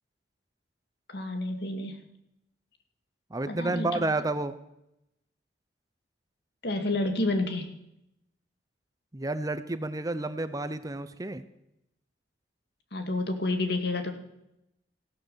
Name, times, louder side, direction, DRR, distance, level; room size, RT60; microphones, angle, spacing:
voice 1, 1.1-2.0 3.5-4.1 6.6-7.7 12.9-14.1, left 2 dB, 65° left, 5 dB, 2.1 m, -29 dB
voice 2, 3.3-4.6 9.1-11.4, right 2 dB, 20° right, 11 dB, 0.7 m, -30 dB
15.5 x 12.0 x 6.9 m, 0.83 s
head